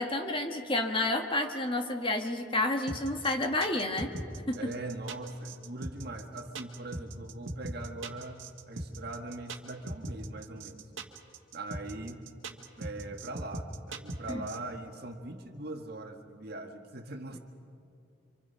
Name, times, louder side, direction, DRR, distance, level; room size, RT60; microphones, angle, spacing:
voice 1, 0.0-4.1 4.5-4.7 14.3-14.5, left 2 dB, 25° left, 4 dB, 1.5 m, -30 dB
sound 1, 2.9-14.6, right 2 dB, 70° right, 1.7 m, -39 dB
voice 2, 4.6-10.9 11.5-12.3 12.8-17.4, right 2 dB, 50° right, 4 dB, 1.6 m, -41 dB
27.5 x 26.0 x 5.6 m, 2.5 s
head